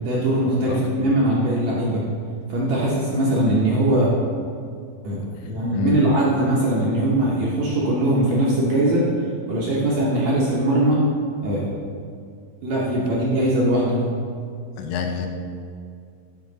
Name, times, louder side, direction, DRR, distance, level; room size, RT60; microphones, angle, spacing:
voice 1, 0.0-2.0 2.5-4.1 5.0-9.1 9.5-11.0 11.4-11.7 12.6-14.0, right 1 dB, 70° right, -5 dB, 1.8 m, -21 dB
voice 2, 0.7-1.1 5.5-6.0 14.8-15.3, left 7 dB, 80° left, 4 dB, 2.1 m, -28 dB
8.7 x 5.5 x 3.9 m, 2.3 s
omnidirectional pair, 4.1 m